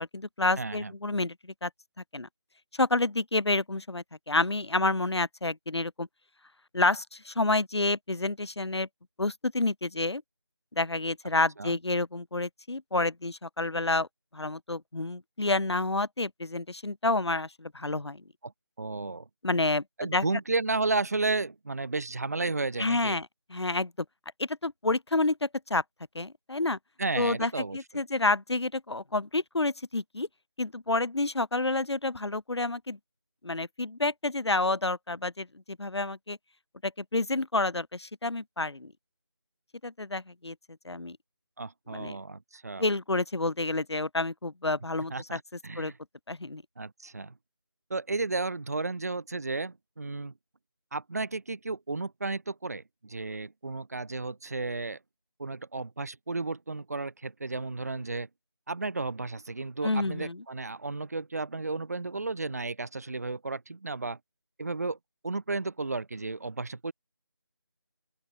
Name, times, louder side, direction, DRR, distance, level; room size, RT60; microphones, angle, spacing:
voice 1, 0.0-1.7 2.1-2.3 2.8-6.1 6.7-8.9 9.2-10.2 10.8-14.1 14.3-18.2 19.4-19.8 20.1-20.2 22.8-23.9 24.4-25.8 26.1-26.8 27.2-30.3 30.6-33.0 33.4-36.4 36.8-38.9 39.8-40.5 40.8-41.2 41.9-42.2 42.8-45.4 45.8-45.9 46.3-46.6 59.8-60.4, left 2 dB, 85° left, 0.8 m, -29 dB
voice 2, 0.6-0.9 11.6-11.8 18.4-18.5 18.8-19.3 20.0-23.2 27.0-27.8 41.6-42.8 45.1-46.0 46.8-47.3 47.9-50.3 50.9-55.0 55.4-58.3 58.7-64.2 64.6-65.0 65.2-66.9, right 3 dB, 40° right, 0.6 m, -33 dB
open air
figure-of-eight pair, 165°, 14 cm